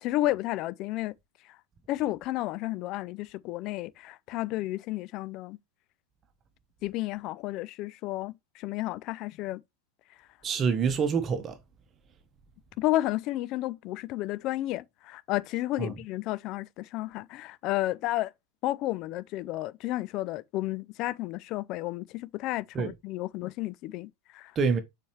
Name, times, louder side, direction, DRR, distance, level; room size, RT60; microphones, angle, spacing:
voice 1, 0.0-1.1 1.9-5.6 6.8-9.6 12.8-18.3 18.6-24.5, left 16 dB, 45° left, 0.4 m, -32 dB
voice 2, 10.4-11.6 15.8-15.9 22.7-22.9 24.5-24.8, right 5 dB, 30° right, 1.0 m, -26 dB
6.9 x 4.5 x 3.1 m
figure-of-eight pair, 90°, 0 cm